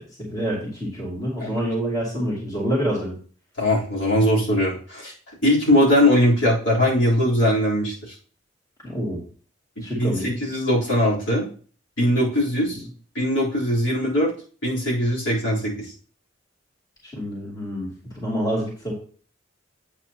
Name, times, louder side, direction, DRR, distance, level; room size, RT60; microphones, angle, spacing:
voice 1, 0.2-3.1 8.8-9.2 9.8-10.3 17.0-17.9 18.1-18.9, equal, 20° left, -5 dB, 2.5 m, -27 dB
voice 2, 3.6-8.1 9.9-11.4 12.0-12.8 13.1-14.3 14.6-15.9, left 1 dB, 65° left, -6 dB, 3.7 m, -21 dB
8.6 x 8.0 x 2.9 m, 0.42 s
head